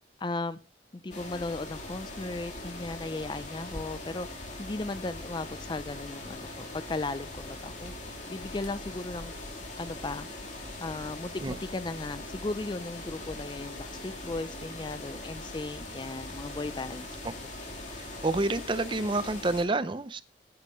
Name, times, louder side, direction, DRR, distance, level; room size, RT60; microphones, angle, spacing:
voice 1, 0.2-0.6 0.9-4.3 4.6-7.9 8.3-9.3 9.8-10.3 10.8-17.1, left 2 dB, 25° left, 14 dB, 0.4 m, -36 dB
sound 1, 1.1-19.6, left 2 dB, 40° left, 2.5 m, -41 dB
voice 2, 18.0-20.2, right 2 dB, 25° right, 13 dB, 0.5 m, -29 dB
9.6 x 7.3 x 5.6 m, 0.39 s
head